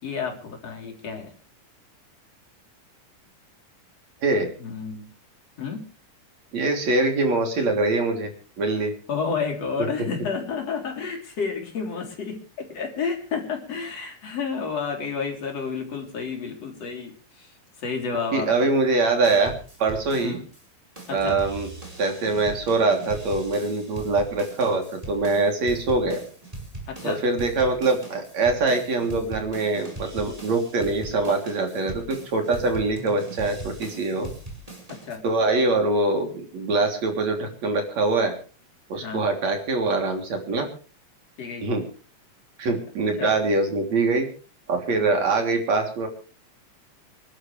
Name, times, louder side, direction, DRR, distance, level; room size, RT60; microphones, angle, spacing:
voice 1, 0.0-1.3 4.6-5.1 5.6-5.9 9.1-17.5 17.8-18.5 20.2-20.4 21.1-21.4 26.9-27.2 34.9-35.2 38.9-39.3 41.4-41.7 43.2-43.4 44.9-45.1, left 5 dB, 60° left, 1 dB, 4.9 m, -31 dB
voice 2, 4.2-4.5 6.5-8.3 8.6-8.9 18.3-19.5 19.8-20.4 21.1-21.7 22.0-26.2 27.0-34.3 35.2-38.3 38.9-40.7 41.6-41.9 42.6-44.3 44.7-46.1, right 3 dB, 65° right, 3 dB, 4.6 m, -23 dB
sound 1, 19.2-20.6 21.0-35.2, right 2 dB, 10° right, 4.9 m, -40 dB
27.5 x 12.0 x 3.4 m, 0.38 s
omnidirectional pair, 3.3 m